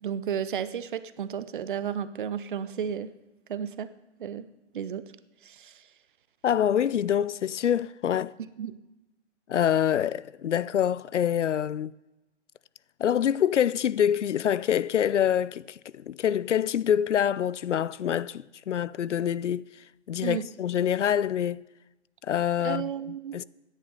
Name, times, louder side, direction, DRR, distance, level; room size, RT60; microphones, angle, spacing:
voice 1, 0.0-3.1 3.5-3.9 4.2-4.5 4.7-5.1 5.4-5.8 8.6-8.8 20.2-20.4 22.6-23.4, right 8 dB, 45° right, 0.6 m, -33 dB
voice 2, 6.4-8.3 9.5-11.9 13.0-19.6 20.1-21.6 22.2-22.9 23.3-23.4, left 9 dB, 80° left, 0.5 m, -26 dB
11.5 x 10.0 x 5.4 m
figure-of-eight pair, 140°, 35 cm